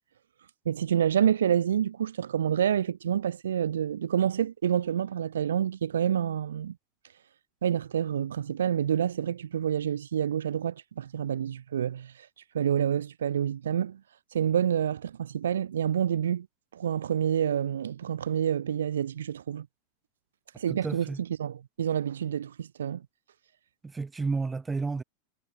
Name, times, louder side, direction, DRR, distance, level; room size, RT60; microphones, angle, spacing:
voice 1, 0.7-6.8 7.6-12.3 12.5-14.0 14.3-16.5 16.7-19.7 20.6-23.0, right 9 dB, 65° right, 0.4 m, -28 dB
voice 2, 20.7-21.2 23.8-25.0, right 4 dB, 10° right, 0.8 m, -31 dB
figure-of-eight pair, 90°, 0 cm